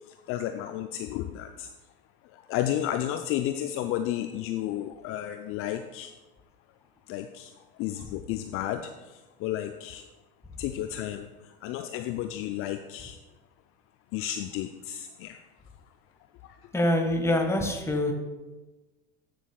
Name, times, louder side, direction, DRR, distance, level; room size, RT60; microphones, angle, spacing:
voice 1, 0.1-1.7 2.3-6.1 7.1-7.5 7.8-10.1 10.6-13.2 14.1-15.4 16.4-16.6, left 12 dB, 50° left, 8 dB, 0.5 m, -32 dB
voice 2, 16.7-18.1, left 1 dB, 10° left, 3 dB, 1.5 m, -25 dB
14.0 x 6.3 x 2.3 m, 1.2 s
hypercardioid pair, 75°, 29 cm